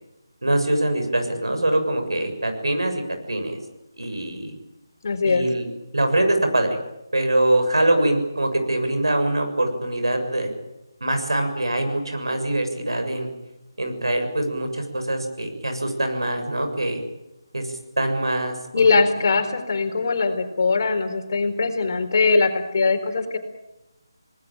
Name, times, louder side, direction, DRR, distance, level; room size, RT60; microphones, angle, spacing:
voice 1, 0.4-3.0 3.3-3.6 4.0-4.5 5.2-5.7 5.9-6.7 7.1-10.5 11.0-13.3 13.8-17.0 17.5-19.0, right 1 dB, 90° right, 6 dB, 6.9 m, -23 dB
voice 2, 5.0-5.5 18.7-23.4, left 4 dB, 50° left, 7 dB, 4.3 m, -21 dB
28.0 x 19.5 x 9.0 m, 0.95 s
figure-of-eight pair, 160°, 2 cm